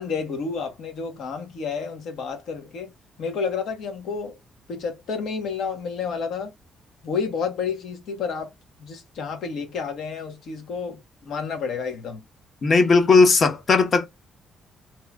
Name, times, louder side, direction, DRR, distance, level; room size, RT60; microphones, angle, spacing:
voice 1, 0.0-2.9 3.2-4.4 4.7-6.5 7.0-8.5 8.8-12.2, left 5 dB, 70° left, 1.2 m, -30 dB
voice 2, 12.6-14.1, left 4 dB, 45° left, 0.9 m, -17 dB
3.0 x 2.9 x 2.4 m
cardioid pair, 90°, 0 cm